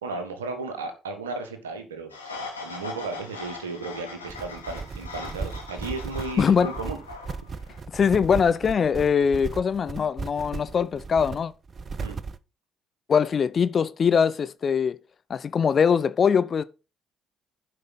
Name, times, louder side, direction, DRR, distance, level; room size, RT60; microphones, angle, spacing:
voice 1, 0.0-2.1 2.6-7.0 12.0-12.2, right 3 dB, 80° right, 1.5 m, -34 dB
sound 1, 2.1-7.8, left 4 dB, 85° left, 1.5 m, -40 dB
sound 2, 4.3-12.4, right 4 dB, 40° right, 0.6 m, -36 dB
voice 2, 6.4-6.7 7.9-11.5 13.1-15.0 15.3-16.6, left 6 dB, 45° left, 0.6 m, -22 dB
11.5 x 5.4 x 4.0 m
figure-of-eight pair, 45°, 0 cm